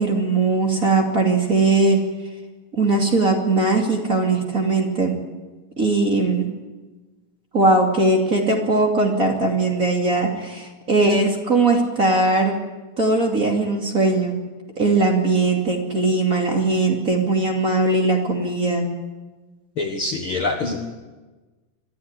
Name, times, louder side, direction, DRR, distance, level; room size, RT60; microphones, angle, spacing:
voice 1, 0.0-2.0 2.7-5.1 5.8-6.5 7.5-12.6 13.0-14.4 14.8-18.9, right 3 dB, 25° right, 1 dB, 2.7 m, -19 dB
voice 2, 19.8-20.8, left 3 dB, 50° left, 3 dB, 2.0 m, -25 dB
23.5 x 14.0 x 9.9 m, 1.2 s
omnidirectional pair, 3.8 m